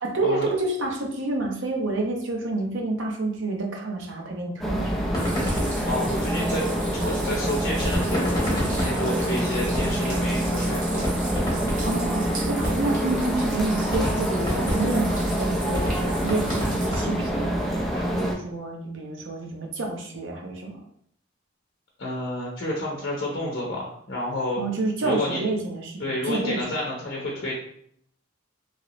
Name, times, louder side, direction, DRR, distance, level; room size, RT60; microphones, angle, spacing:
voice 1, 0.0-5.0 11.8-20.8 24.6-26.8, right 2 dB, 70° right, 1 dB, 0.7 m, -29 dB
sound 1, 4.6-18.4, right 1 dB, ahead, 0.4 m, -26 dB
sound 2, 5.1-6.8 7.8-10.2 10.6-10.7 11.0-13.1 13.5-13.6 13.9-17.5, equal, 20° left, 1.3 m, -29 dB
sound 3, 5.1-16.9, right 3 dB, 40° right, 0.8 m, -38 dB
voice 2, 5.9-6.7 6.9-11.1 22.0-24.6 25.0-25.4 26.0-27.5, left 1 dB, 55° left, -3 dB, 0.7 m, -30 dB
3.0 x 2.9 x 2.9 m, 0.68 s
head